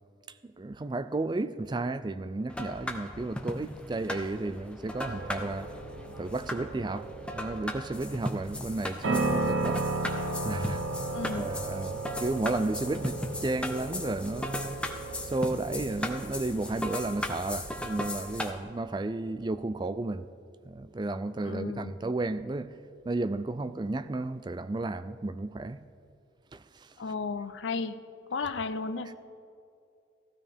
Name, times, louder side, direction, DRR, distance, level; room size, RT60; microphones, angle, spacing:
voice 1, 0.4-5.7 6.2-9.8 10.4-10.8 11.3-14.8 15.3-20.3 20.6-22.7 23.0-25.8 26.5-27.0, right 2 dB, 20° right, 0.3 m, -33 dB
sound 1, 2.5-18.5, left 1 dB, 5° left, 0.7 m, -37 dB
sound 2, 5.1-18.1, right 2 dB, 80° right, 0.9 m, -35 dB
voice 2, 11.1-11.5 21.4-21.9 27.0-28.0 28.3-29.1, left 4 dB, 70° left, 0.5 m, -34 dB
15.5 x 12.5 x 3.5 m
head